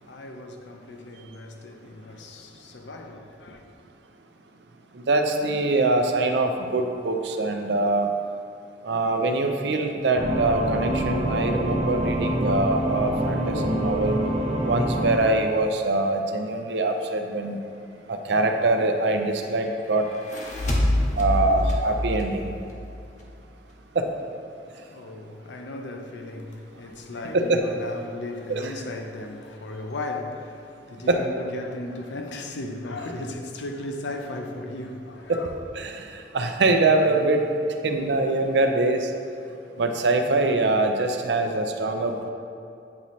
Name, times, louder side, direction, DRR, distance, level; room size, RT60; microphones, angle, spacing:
voice 1, 0.0-3.6 24.7-35.7, left 2 dB, 75° left, 0.6 m, -36 dB
voice 2, 4.9-8.1 8.8-14.2 14.6-17.6 18.1-20.1 21.2-22.4 23.9-24.1 27.3-27.6 28.5-28.7 31.1-31.2 35.3-35.4 35.7-37.5 37.8-39.1 39.8-42.3, right 2 dB, 70° right, 0.5 m, -23 dB
sound 1, 10.2-15.2, equal, 35° right, 0.6 m, -26 dB
sound 2, 20.1-23.4, left 1 dB, 45° left, 0.8 m, -26 dB
8.4 x 3.1 x 4.1 m
head